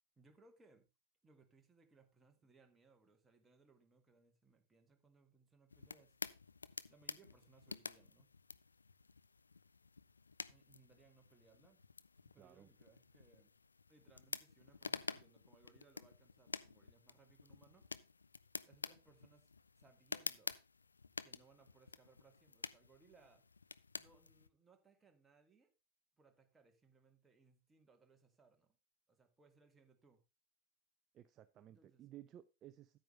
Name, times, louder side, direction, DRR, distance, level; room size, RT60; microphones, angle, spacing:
voice 1, 0.2-0.9 1.2-6.2 6.9-8.3 10.5-11.8 12.2-13.5 13.9-17.9 18.7-19.5 19.8-20.6 21.2-23.5 24.0-25.7 26.2-28.8 29.1-30.2 31.7-32.0, right 4 dB, 15° right, 4 dB, 1.7 m, -69 dB
sound 1, 5.7-24.5, left 4 dB, 75° left, 0.4 m, -50 dB
voice 2, 12.4-12.7 31.1-33.0, right 12 dB, 30° right, 13 dB, 0.5 m, -57 dB
9.3 x 9.0 x 3.3 m, 0.27 s
figure-of-eight pair, 90°, 0 cm